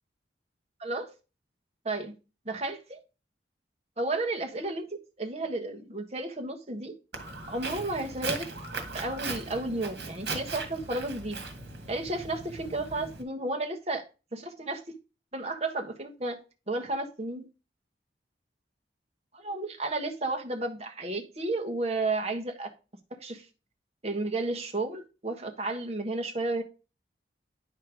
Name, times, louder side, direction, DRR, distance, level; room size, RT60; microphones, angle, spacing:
voice 1, 2.4-3.0 4.0-4.9 5.2-6.9 7.5-8.5 8.9-11.4 11.9-14.0 14.3-15.0 15.3-16.4 16.7-17.4 19.3-22.7 23.2-23.4 24.0-26.6, right 2 dB, 35° right, 4 dB, 1.3 m, -32 dB
Walk footsteps, 7.1-13.2, right 3 dB, 70° right, 1.8 m, -38 dB
10.5 x 4.5 x 4.8 m, 0.32 s
head